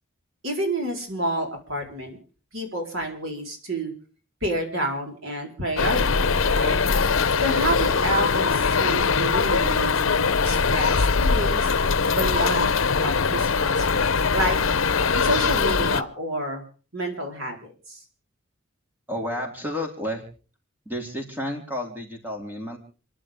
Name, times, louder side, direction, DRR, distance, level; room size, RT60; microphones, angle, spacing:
voice 1, 0.4-2.2 2.5-3.9 4.4-6.8 7.4-11.7 12.1-14.6 15.1-16.6 16.9-18.0, right 1 dB, 80° right, 3 dB, 4.4 m, -29 dB
sound 1, 5.8-16.0, left 5 dB, 75° left, 0.8 m, -21 dB
voice 2, 19.1-20.2 20.9-22.8, equal, 10° right, 1 dB, 3.9 m, -31 dB
29.5 x 11.5 x 3.7 m, 0.39 s
head